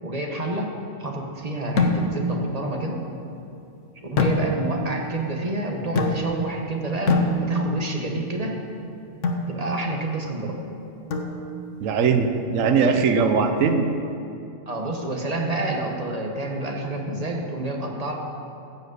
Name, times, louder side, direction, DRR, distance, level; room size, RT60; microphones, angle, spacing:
voice 1, 0.0-3.0 4.1-8.6 9.5-10.6 14.7-18.1, right 2 dB, 30° right, 1 dB, 1.2 m, -29 dB
sound 1, 1.8-2.4 4.2-4.9 6.0-6.6 7.1-7.9 9.2-9.6 11.1-11.7, left 2 dB, 70° left, 1.3 m, -24 dB
voice 2, 11.8-13.9, right 5 dB, 80° right, 6 dB, 1.2 m, -20 dB
14.0 x 5.1 x 8.0 m, 2.7 s
omnidirectional pair, 1.3 m